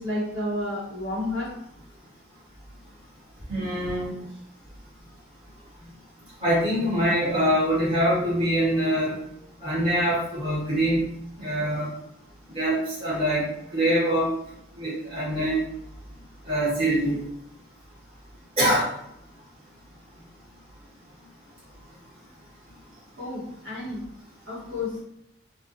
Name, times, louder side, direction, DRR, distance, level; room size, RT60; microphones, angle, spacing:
voice 1, 0.0-1.5 23.2-24.0 24.5-25.0, left 1 dB, 70° right, -7 dB, 1.0 m, -31 dB
voice 2, 3.5-4.1 6.4-9.1 9.6-11.0 11.4-11.9 12.5-13.5 13.7-14.3 14.8-15.6 16.5-17.2 18.6-18.9, equal, 25° right, -9 dB, 1.2 m, -24 dB
2.4 x 2.2 x 2.6 m, 0.77 s
head